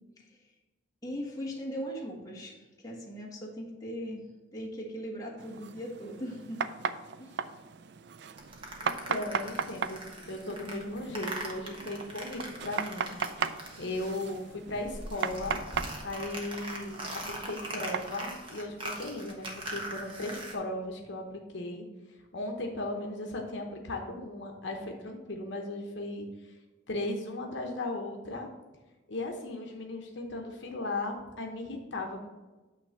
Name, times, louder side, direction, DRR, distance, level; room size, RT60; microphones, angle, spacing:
voice 1, 1.0-6.6 7.2-7.4, equal, 15° left, -3 dB, 1.4 m, -39 dB
sound 1, 5.4-18.2, right 6 dB, 55° right, 0.4 m, -38 dB
sound 2, 8.4-14.4 14.7-20.5, right 1 dB, 25° right, 1.2 m, -41 dB
voice 2, 8.8-10.0 10.3-13.2 13.4-15.6 16.0-26.6 26.9-28.5 29.1-32.3, left 2 dB, 65° left, 2 dB, 0.9 m, -37 dB
9.0 x 3.3 x 6.6 m, 1.2 s
head